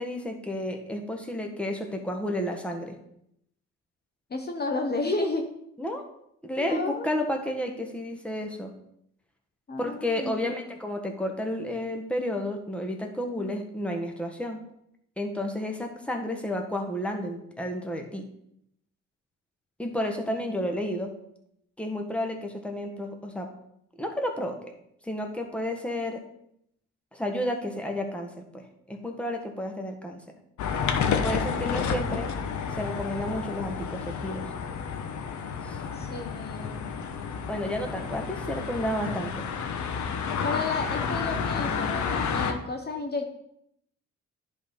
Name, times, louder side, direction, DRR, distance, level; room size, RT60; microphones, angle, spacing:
voice 1, 0.0-3.0 5.8-6.0 6.4-8.7 9.8-14.6 15.2-18.2 19.8-21.1 21.8-23.5 24.0-24.7 25.0-26.2 27.1-30.2 31.2-32.3 32.7-34.4 35.6-35.8 37.5-39.5, left 1 dB, 5° left, 3 dB, 1.5 m, -31 dB
voice 2, 4.3-5.4 6.6-7.1 9.7-10.4 31.3-32.0 35.9-37.0 40.4-43.3, left 3 dB, 35° left, 3 dB, 1.1 m, -32 dB
sound 1, 30.6-42.5, left 6 dB, 70° left, 1.1 m, -30 dB
10.5 x 4.2 x 5.4 m, 0.75 s
cardioid pair, 90°, 30 cm